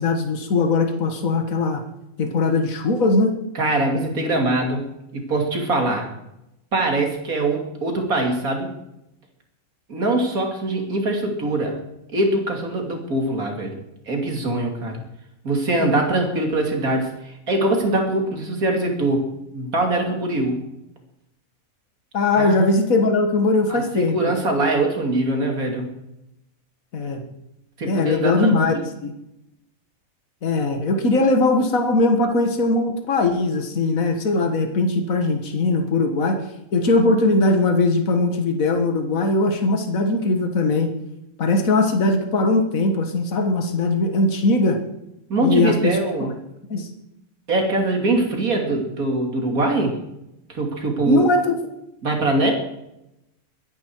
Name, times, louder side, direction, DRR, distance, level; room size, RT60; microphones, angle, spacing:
voice 1, 0.0-1.8 2.2-3.4 15.8-16.1 22.1-24.3 26.9-27.2 27.9-28.7 29.0-29.1 30.4-36.4 36.7-40.9 41.4-44.8 45.4-46.0 46.7-46.9 51.1-51.6, left 2 dB, 70° left, 5 dB, 2.0 m, -20 dB
voice 2, 3.5-6.1 6.7-8.7 9.9-11.7 12.1-13.8 14.1-15.0 15.4-20.6 22.4-22.6 23.7-25.9 27.8-28.5 45.3-46.3 47.5-50.0 50.5-51.2 52.0-52.5, right 2 dB, 80° right, 2 dB, 3.2 m, -22 dB
22.0 x 10.5 x 4.7 m, 0.87 s
omnidirectional pair, 1.5 m